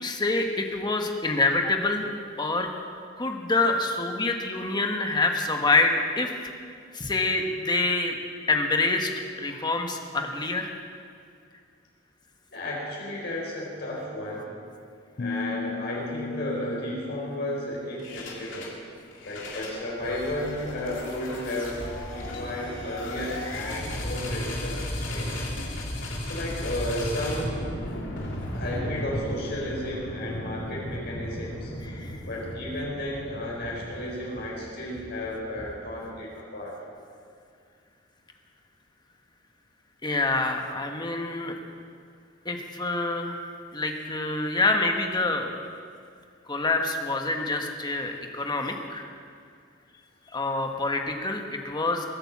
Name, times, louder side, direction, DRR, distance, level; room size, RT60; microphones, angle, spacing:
voice 1, 0.0-2.1 2.4-2.7 3.2-6.3 6.9-8.2 8.5-9.1 9.4-10.7 31.8-32.2 40.0-41.6 42.4-43.4 43.7-45.5 46.5-49.0 50.3-52.1, left 3 dB, 25° left, 3 dB, 1.4 m, -26 dB
voice 2, 12.5-14.5 15.1-18.7 19.2-25.4 26.3-27.7 28.5-31.7 32.2-36.8, left 1 dB, 60° left, -4 dB, 4.6 m, -33 dB
sound 1, 15.2-18.3, left 4 dB, 40° left, 0.5 m, -36 dB
sound 2, 18.0-18.8 19.1-36.1, left 1 dB, 90° left, 3.0 m, -35 dB
21.5 x 9.0 x 7.4 m, 2.3 s
head